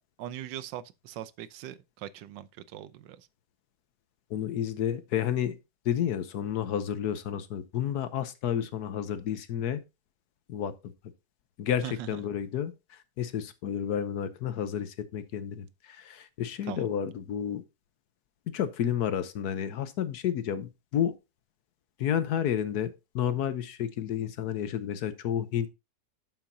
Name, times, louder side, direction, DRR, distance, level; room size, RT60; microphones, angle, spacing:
voice 1, 0.2-3.3 11.8-12.2 16.7-16.9, right 11 dB, 85° right, 1.3 m, -40 dB
voice 2, 4.3-5.6 5.8-9.8 10.5-10.9 11.6-17.6 18.5-21.1 22.0-25.7, left 9 dB, 65° left, 1.2 m, -31 dB
11.5 x 5.9 x 2.7 m
omnidirectional pair, 1.9 m